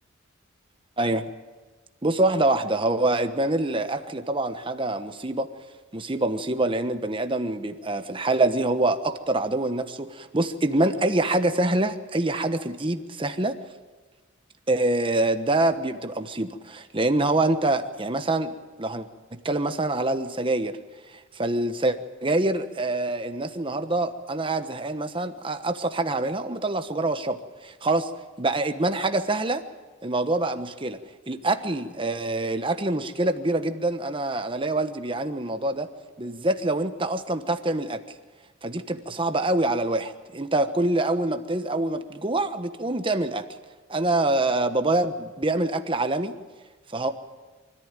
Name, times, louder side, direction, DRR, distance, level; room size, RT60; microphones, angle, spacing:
voice 1, 2.0-5.5 5.9-13.6 14.7-19.1 19.4-20.8 21.1-28.1 28.4-29.6 30.0-31.0 31.3-35.9 36.2-38.0 38.6-43.5 43.9-46.3 46.9-47.1, right 2 dB, 25° right, 8 dB, 1.1 m, -25 dB
25.0 x 14.0 x 9.1 m, 1.3 s
head